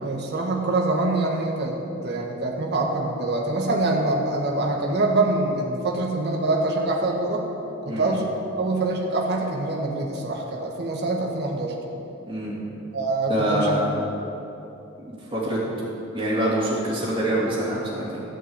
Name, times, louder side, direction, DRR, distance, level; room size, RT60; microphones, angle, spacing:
voice 1, 0.0-1.8 2.0-7.5 7.8-11.8 12.9-13.8, right 2 dB, 55° right, -1 dB, 1.6 m, -25 dB
voice 2, 12.3-12.6 13.3-13.9 15.3-15.9 16.1-18.2, right 1 dB, 25° right, -6 dB, 3.3 m, -25 dB
14.0 x 6.1 x 8.3 m, 2.9 s
head